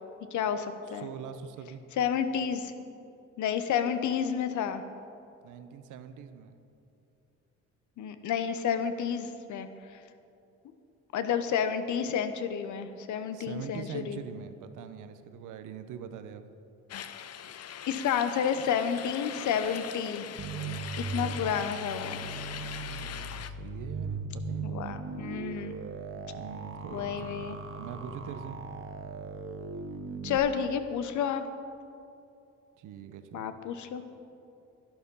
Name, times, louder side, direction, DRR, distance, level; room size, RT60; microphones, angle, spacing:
voice 1, 0.3-1.1 2.0-2.7 3.4-4.8 8.0-10.0 11.1-14.2 17.9-20.3 21.1-22.2 24.6-25.7 26.9-27.6 30.2-31.4 33.3-34.0, left 8 dB, 75° left, 10 dB, 0.9 m, -30 dB
voice 2, 0.9-1.8 5.4-6.6 13.3-16.4 20.9-21.7 22.0-25.0 26.3-28.6 32.8-33.5, right 7 dB, 85° right, 10 dB, 0.9 m, -43 dB
sound 1, 16.9-23.5, left 9 dB, 55° left, 0.6 m, -41 dB
sound 2, 20.4-30.4, right 4 dB, 45° right, 1.0 m, -38 dB
11.5 x 11.5 x 5.5 m, 2.7 s
cardioid pair, 90°, 30 cm